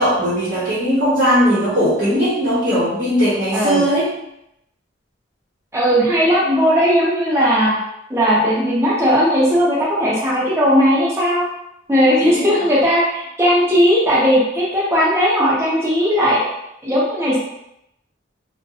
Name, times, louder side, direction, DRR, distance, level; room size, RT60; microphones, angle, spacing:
voice 1, 0.0-4.1 12.2-12.5, equal, 50° right, -11 dB, 0.9 m, -18 dB
voice 2, 3.5-3.9 5.7-7.7 8.1-11.4 11.9-16.5 16.8-17.4, equal, 15° right, -7 dB, 0.8 m, -17 dB
2.5 x 2.2 x 2.7 m, 0.81 s
head